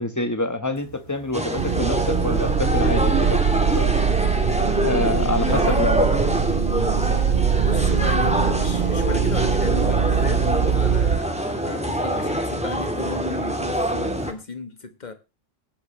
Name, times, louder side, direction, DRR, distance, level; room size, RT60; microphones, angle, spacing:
voice 1, 0.0-3.4 3.7-4.0 4.8-6.0, left 2 dB, 15° left, 1.2 m, -26 dB
sound 1, 0.7-14.4, left 1 dB, 75° left, 7.5 m, -49 dB
sound 2, 1.3-14.3, equal, 5° right, 1.7 m, -25 dB
sound 3, 1.6-11.2, right 7 dB, 50° right, 0.8 m, -22 dB
voice 2, 5.4-5.8 7.6-15.1, left 3 dB, 35° left, 1.4 m, -34 dB
19.0 x 9.9 x 3.2 m
omnidirectional pair, 1.3 m